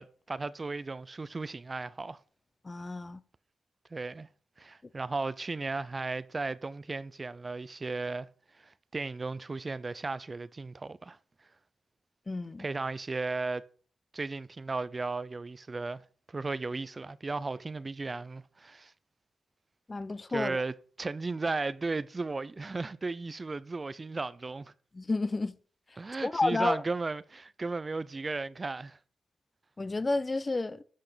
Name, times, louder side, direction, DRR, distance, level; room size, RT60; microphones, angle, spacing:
voice 1, 0.0-2.2 3.9-4.3 4.6-8.3 8.6-11.2 12.6-13.7 14.1-16.0 16.3-18.9 20.3-20.7 21.0-24.7 26.0-29.0, right 3 dB, 35° right, 0.5 m, -35 dB
voice 2, 2.6-3.2 12.3-12.7 19.9-20.6 24.9-25.5 26.2-26.8 29.8-30.8, left 3 dB, 30° left, 0.8 m, -30 dB
12.0 x 5.7 x 5.0 m
supercardioid pair, 50°, 0 cm